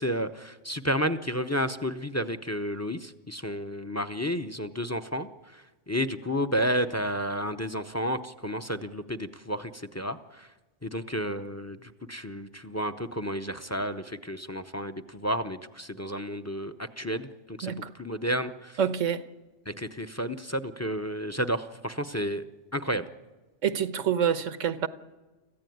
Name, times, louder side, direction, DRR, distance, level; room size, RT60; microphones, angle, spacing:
voice 1, 0.0-5.3 5.9-10.5 10.8-18.7 19.7-22.4 22.7-23.1, equal, 15° left, 0.6 m, -31 dB
voice 2, 18.8-19.2 23.6-24.9, right 8 dB, 90° right, 1.4 m, -27 dB
25.5 x 15.0 x 9.3 m
omnidirectional pair, 1.3 m